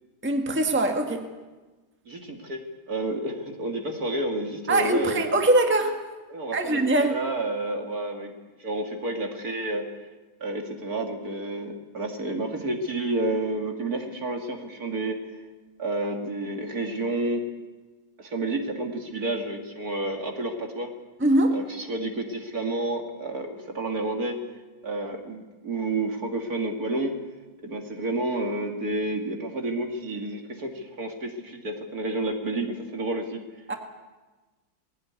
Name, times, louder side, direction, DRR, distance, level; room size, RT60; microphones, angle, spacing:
voice 1, 0.2-1.3 4.7-5.9 6.5-7.1 21.2-21.6 33.7-33.8, right 2 dB, 5° right, 3 dB, 1.6 m, -22 dB
voice 2, 2.1-2.6 2.9-5.2 6.3-8.3 8.6-9.8 10.4-15.2 15.8-17.5 18.2-20.9 21.5-24.4 24.8-27.1 27.6-33.4, right 2 dB, 50° right, 3 dB, 2.7 m, -30 dB
20.0 x 17.0 x 9.6 m, 1.2 s
omnidirectional pair, 2.1 m